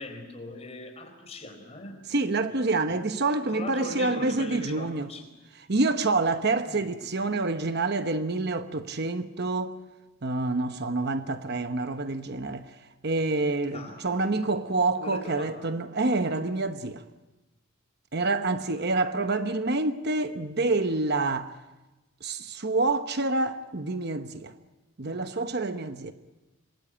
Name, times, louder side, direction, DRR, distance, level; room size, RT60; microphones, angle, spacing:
voice 1, 0.0-2.0 2.6-5.3 6.7-6.9 13.7-14.1 15.0-15.7, left 2 dB, 30° left, 4.3 m, -40 dB
voice 2, 2.1-5.1 5.7-9.7 10.2-12.7 13.0-17.0 18.1-21.6 22.2-24.5 25.0-26.1, right 3 dB, 50° right, 1.0 m, -27 dB
27.0 x 22.0 x 8.8 m
head